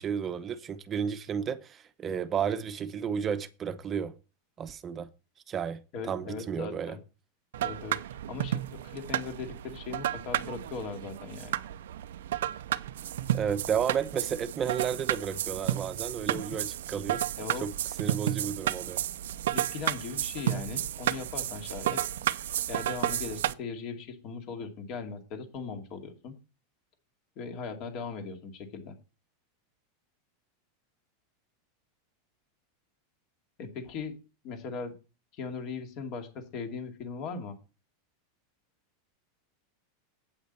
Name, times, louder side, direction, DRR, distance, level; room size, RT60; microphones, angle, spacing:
voice 1, 0.0-4.1 4.6-5.1 5.5-7.0 13.3-17.2 17.6-17.7 18.0-19.0, right 7 dB, 25° right, 0.8 m, -32 dB
voice 2, 5.9-7.0 7.6-8.0 8.3-11.6 17.4-17.7 19.5-22.0 22.7-26.3 27.4-28.9 33.6-34.2 34.4-34.9 35.4-37.6, left 5 dB, 45° left, 2.5 m, -39 dB
sound 1, 7.5-23.5, right 12 dB, 85° right, 0.5 m, -32 dB
8.5 x 8.4 x 4.4 m
supercardioid pair, 140°, 0 cm